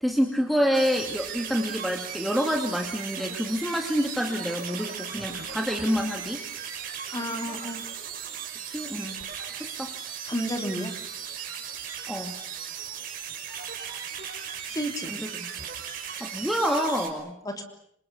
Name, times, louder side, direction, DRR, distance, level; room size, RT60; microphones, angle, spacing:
voice 1, 0.0-6.4 8.7-9.2 9.6-9.9 12.1-12.4 15.1-15.5 16.2-17.4, equal, ahead, 2 dB, 2.2 m, -27 dB
sound 1, 0.7-17.1, right 8 dB, 45° right, 5.5 m, -37 dB
voice 2, 7.1-7.8 10.3-10.9 14.7-15.1 17.4-17.6, equal, 20° left, 5 dB, 3.2 m, -31 dB
27.5 x 26.5 x 7.1 m, 0.69 s
head